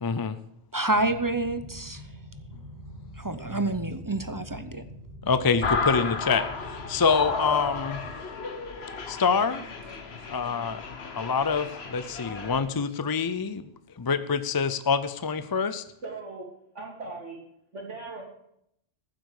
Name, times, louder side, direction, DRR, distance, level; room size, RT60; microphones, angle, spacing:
voice 1, 0.0-0.4 5.3-8.0 9.1-9.6 10.3-10.8 11.1-13.7 14.0-15.8, left 5 dB, 35° left, 13 dB, 0.3 m, -26 dB
voice 2, 0.7-2.0 3.2-4.8, right 2 dB, 20° right, 11 dB, 0.6 m, -28 dB
sound 1, 0.9-8.1, equal, 90° left, 3.2 m, -43 dB
sound 2, 5.6-12.6, left 4 dB, 60° left, 1.5 m, -33 dB
voice 3, 16.0-16.5 16.7-17.4 17.7-18.2, right 3 dB, 90° right, 0 dB, 3.4 m, -38 dB
15.0 x 7.9 x 6.6 m, 0.75 s
omnidirectional pair, 1.2 m